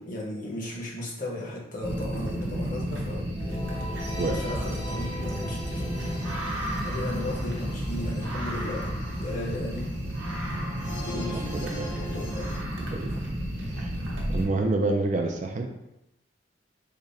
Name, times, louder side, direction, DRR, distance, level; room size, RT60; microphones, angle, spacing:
voice 1, 0.0-3.3 4.2-6.0 6.8-9.9 10.9-11.5 12.0-12.5, left 1 dB, 45° left, -4 dB, 1.0 m, -35 dB
sound 1, 1.8-14.5, equal, 85° right, 0.8 m, -32 dB
sound 2, 3.3-12.6, left 1 dB, 75° left, 1.1 m, -41 dB
voice 2, 11.1-11.9 12.9-13.1 13.7-13.9 14.3-15.7, right 2 dB, 40° right, 3 dB, 0.3 m, -28 dB
3.7 x 2.1 x 4.0 m, 0.87 s
head